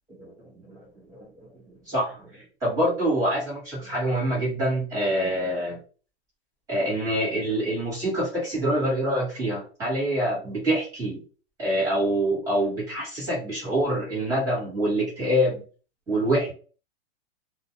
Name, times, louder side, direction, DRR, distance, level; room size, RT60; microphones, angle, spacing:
voice 1, 0.2-1.2 1.7-5.8 6.7-11.2 11.6-15.6 16.1-16.5, right 1 dB, 10° right, -5 dB, 1.1 m, -26 dB
2.3 x 2.1 x 2.7 m, 0.37 s
supercardioid pair, 175°, 33 cm